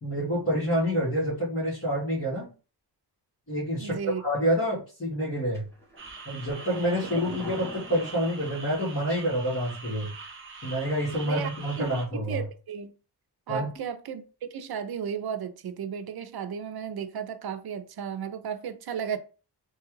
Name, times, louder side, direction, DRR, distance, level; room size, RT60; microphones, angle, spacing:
voice 1, 0.0-2.5 3.5-5.7 6.2-10.1 10.6-12.4 13.5-13.7, equal, 35° left, 1.5 m, -28 dB
voice 2, 3.8-4.2 11.2-11.5 11.8-12.9 13.5-19.2, right 7 dB, 60° right, 0.5 m, -34 dB
sound 1, 5.5-9.2 9.5-9.6, equal, 5° left, 1.2 m, -44 dB
sound 2, 6.0-12.0, right 4 dB, 30° right, 0.7 m, -43 dB
3.3 x 2.3 x 3.1 m
wide cardioid pair, 130°, 42 cm